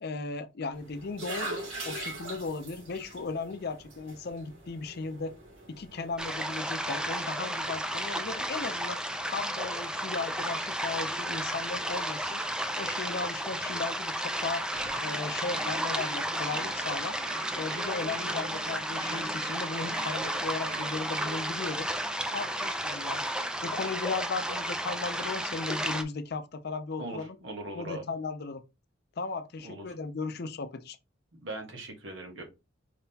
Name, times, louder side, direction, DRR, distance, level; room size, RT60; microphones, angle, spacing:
voice 1, 0.0-5.3 5.7-12.4 12.8-14.7 15.0-17.2 17.6-21.9 22.3-23.2 23.6-27.4 27.7-28.6 29.2-31.0, left 4 dB, 55° left, 0.5 m, -36 dB
sound 1, 0.7-6.4, right 2 dB, 85° right, 2.5 m, -42 dB
sound 2, 6.2-26.0, right 1 dB, 5° right, 0.4 m, -33 dB
sound 3, 14.7-21.5, right 2 dB, 45° right, 1.0 m, -43 dB
voice 2, 27.0-28.0 29.6-29.9 31.3-32.4, right 1 dB, 70° right, 1.4 m, -40 dB
4.9 x 3.7 x 2.8 m
head